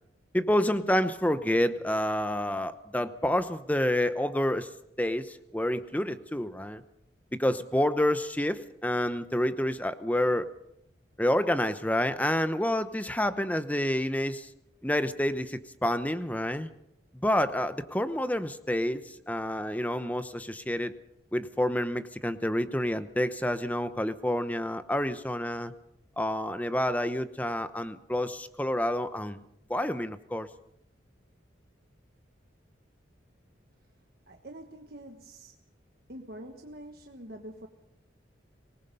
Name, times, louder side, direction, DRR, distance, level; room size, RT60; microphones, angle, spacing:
voice 1, 0.3-4.7 5.0-6.8 7.3-10.5 11.2-14.5 14.8-16.7 17.2-20.9 21.3-25.7 26.2-29.4 29.7-30.5, left 1 dB, 10° left, 11 dB, 0.8 m, -28 dB
voice 2, 34.3-35.5 36.1-37.7, right 1 dB, 55° right, 3 dB, 1.5 m, -45 dB
24.5 x 20.0 x 5.4 m, 0.79 s
head